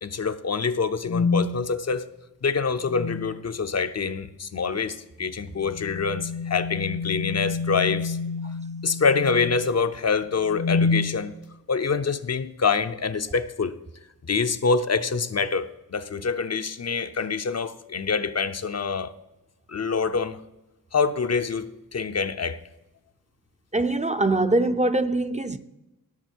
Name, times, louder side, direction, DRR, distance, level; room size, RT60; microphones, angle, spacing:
voice 1, 0.0-2.1 2.4-8.2 8.8-11.3 11.7-13.8 14.2-19.1 19.7-20.4 20.9-22.6, left 5 dB, 45° left, 0.6 m, -26 dB
sound 1, 1.1-1.5 2.8-3.4 5.6-9.7 10.4-11.1, left 4 dB, 75° left, 1.3 m, -28 dB
voice 2, 23.7-25.6, right 2 dB, 20° right, 0.5 m, -23 dB
17.0 x 7.3 x 4.5 m
wide cardioid pair, 140°, 35 cm